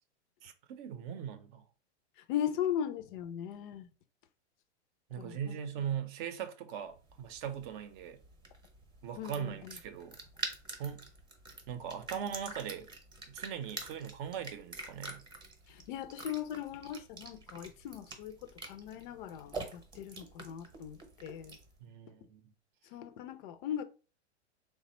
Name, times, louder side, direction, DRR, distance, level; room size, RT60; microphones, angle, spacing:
voice 1, 0.4-1.6 5.1-8.2 9.0-10.2 10.8-11.1 11.7-12.9 13.3-15.3 21.8-22.5, right 8 dB, 45° right, 0.6 m, -40 dB
voice 2, 2.2-3.9 5.2-5.6 9.2-9.8 15.7-21.6 22.8-23.8, left 10 dB, 50° left, 0.5 m, -39 dB
sound 1, 6.9-21.8, right 3 dB, 15° right, 0.8 m, -46 dB
3.3 x 2.1 x 4.2 m
hypercardioid pair, 120°, 34 cm